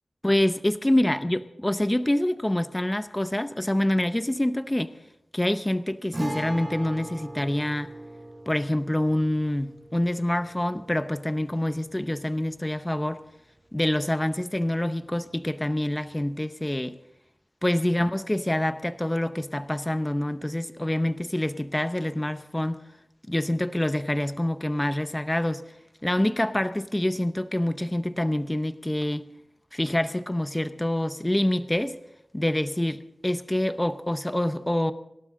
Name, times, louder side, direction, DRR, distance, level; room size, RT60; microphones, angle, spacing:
voice 1, 0.2-4.9 5.3-7.9 8.5-13.2 13.7-17.0 17.6-22.8 23.3-25.6 26.0-29.2 29.7-32.0 32.3-34.9, left 1 dB, 15° left, 11 dB, 0.7 m, -26 dB
Guitar, 6.1-13.7 14.0-14.1 16.1-16.3, right 1 dB, 30° right, 6.2 m, -40 dB
26.0 x 12.5 x 3.8 m, 0.82 s
wide cardioid pair, 65°, 0 cm